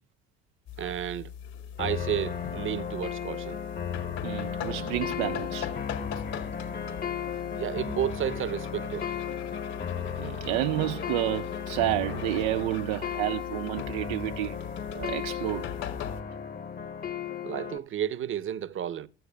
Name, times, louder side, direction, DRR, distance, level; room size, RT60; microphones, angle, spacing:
sound 1, 0.7-16.2, left 8 dB, 60° left, 1.9 m, -40 dB
voice 1, 0.8-1.3 1.8-3.6 7.6-9.1 17.4-19.1, right 10 dB, 40° right, 0.9 m, -32 dB
sound 2, 1.8-17.8, left 7 dB, 30° left, 1.1 m, -35 dB
voice 2, 4.2-5.7 10.2-14.6 14.9-15.7, right 16 dB, 70° right, 0.4 m, -30 dB
15.5 x 13.0 x 2.3 m
hypercardioid pair, 70°, 30 cm